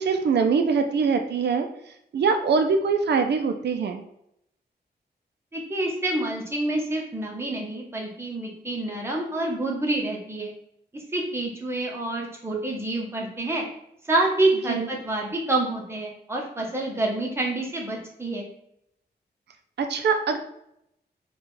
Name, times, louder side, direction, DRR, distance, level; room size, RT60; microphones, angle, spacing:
voice 1, 0.0-1.7 2.1-4.0 14.7-14.9 19.8-20.4, right 5 dB, 80° right, 6 dB, 0.5 m, -23 dB
voice 2, 5.5-10.5 10.9-13.6 14.0-18.5, right 2 dB, 15° right, -1 dB, 0.8 m, -27 dB
4.1 x 2.4 x 3.7 m, 0.75 s
wide cardioid pair, 180°, 17 cm